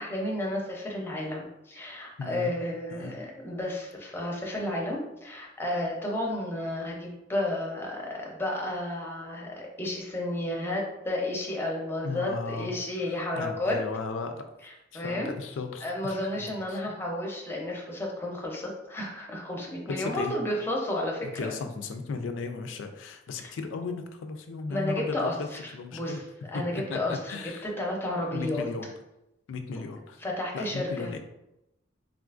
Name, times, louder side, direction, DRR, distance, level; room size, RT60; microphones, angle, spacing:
voice 1, 0.0-13.8 14.9-15.3 15.8-21.5 23.4-23.5 24.7-25.3 25.9-26.2 26.5-27.4 27.6-28.7 30.2-31.1, left 1 dB, 10° left, -1 dB, 0.5 m, -32 dB
voice 2, 2.2-2.5 2.9-3.2 12.0-12.7 13.1-14.5 14.9-16.8 19.9-20.4 21.3-26.2 26.5-27.7 28.3-28.9 29.5-30.2 30.5-31.2, left 4 dB, 90° left, 7 dB, 0.4 m, -36 dB
3.6 x 2.4 x 2.4 m, 0.91 s
head